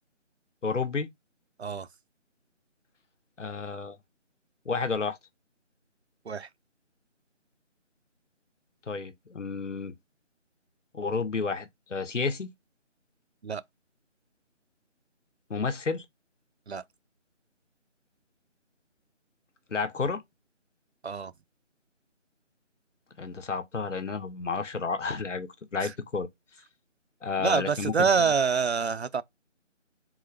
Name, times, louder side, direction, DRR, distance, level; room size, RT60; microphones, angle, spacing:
voice 1, 0.6-1.1 3.4-4.0 4.6-5.2 8.9-9.9 10.9-12.5 15.5-16.0 19.7-20.2 23.2-26.3 27.2-28.1, left 4 dB, 70° left, 1.0 m, -31 dB
voice 2, 27.4-29.2, right 5 dB, 60° right, 0.4 m, -26 dB
3.8 x 2.5 x 3.2 m
figure-of-eight pair, 175°, 37 cm